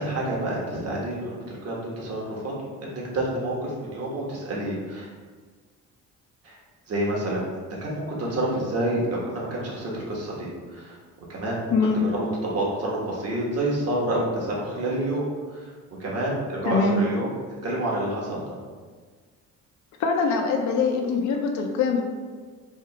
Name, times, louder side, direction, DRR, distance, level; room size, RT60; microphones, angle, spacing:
voice 1, 0.0-5.1 6.4-6.6 6.9-7.4 7.8-11.0 11.3-15.3 15.5-15.7 16.0-17.3 17.6-18.6, right 1 dB, 55° right, -4 dB, 1.4 m, -28 dB
voice 2, 16.6-17.0 20.0-22.0, left 4 dB, 70° left, 2 dB, 0.6 m, -23 dB
3.6 x 2.8 x 4.5 m, 1.5 s
cardioid pair, 90°, 30 cm